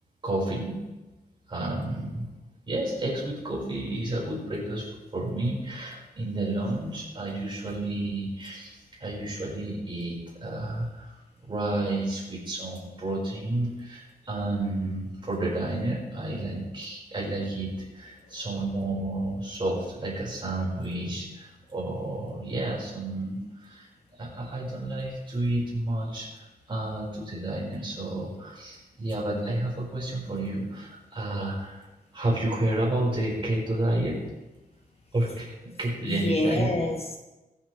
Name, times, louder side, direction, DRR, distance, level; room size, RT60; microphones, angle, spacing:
voice 1, 0.2-0.8 1.5-2.3 2.6-11.1 11.4-23.9 24.2-31.9 32.1-34.2 35.1-36.7, right 1 dB, 30° right, -4 dB, 4.9 m, -31 dB
voice 2, 18.5-18.9 36.0-37.2, left 2 dB, 40° left, 3 dB, 1.1 m, -29 dB
23.5 x 7.8 x 3.3 m, 1.1 s
wide cardioid pair, 155°, 17 cm